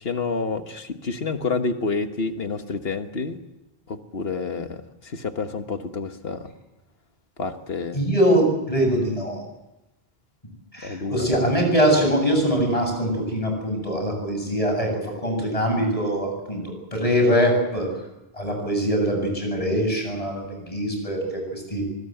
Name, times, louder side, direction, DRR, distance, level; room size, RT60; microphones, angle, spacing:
voice 1, 0.0-3.4 3.9-4.8 5.0-6.5 7.4-8.0 10.8-11.3, left 4 dB, 70° left, 7 dB, 1.6 m, -28 dB
voice 2, 7.9-9.4 10.7-16.6 16.9-17.9 18.3-21.9, equal, 35° left, 2 dB, 7.8 m, -23 dB
24.0 x 20.5 x 7.9 m, 0.94 s
omnidirectional pair, 1.0 m